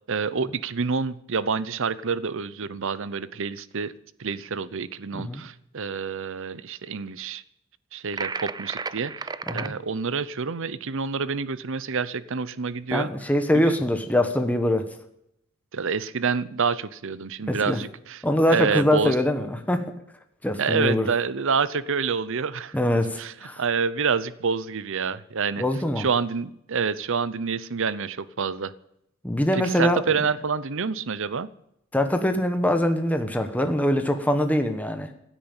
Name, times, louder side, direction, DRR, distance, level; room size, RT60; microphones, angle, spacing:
voice 1, 0.1-3.9 4.2-7.4 7.9-13.1 13.5-13.7 15.7-18.2 18.5-19.1 20.6-22.8 23.2-25.6 26.0-28.7 29.5-31.5, right 5 dB, 65° right, 17 dB, 0.7 m, -27 dB
sound 1, 8.1-9.7, right 4 dB, 20° right, 0.5 m, -33 dB
voice 2, 12.9-14.8 17.5-17.8 18.2-19.9 20.4-21.1 22.7-23.6 25.6-26.0 29.2-30.0 31.9-35.1, left 1 dB, 5° left, 6 dB, 1.1 m, -23 dB
16.0 x 9.3 x 8.9 m, 0.77 s
head